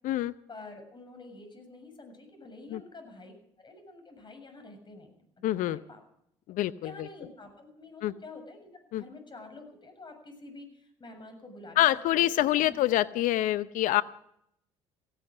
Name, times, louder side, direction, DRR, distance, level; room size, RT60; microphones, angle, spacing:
voice 1, 0.5-6.0 6.8-12.8, left 2 dB, 30° left, 6 dB, 7.0 m, -48 dB
voice 2, 5.4-5.8 6.5-7.1 8.0-8.1 8.9-9.0 11.8-14.0, left 14 dB, 65° left, 16 dB, 0.7 m, -26 dB
17.0 x 16.5 x 4.9 m, 0.74 s
hypercardioid pair, 60°, 15 cm